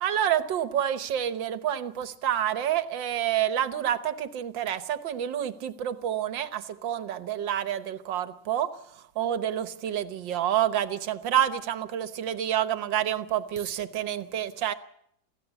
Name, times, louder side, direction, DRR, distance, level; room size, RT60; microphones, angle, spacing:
voice 1, 0.0-14.7, right 10 dB, 80° right, 1.8 m, -28 dB
22.5 x 15.5 x 8.2 m
omnidirectional pair, 2.0 m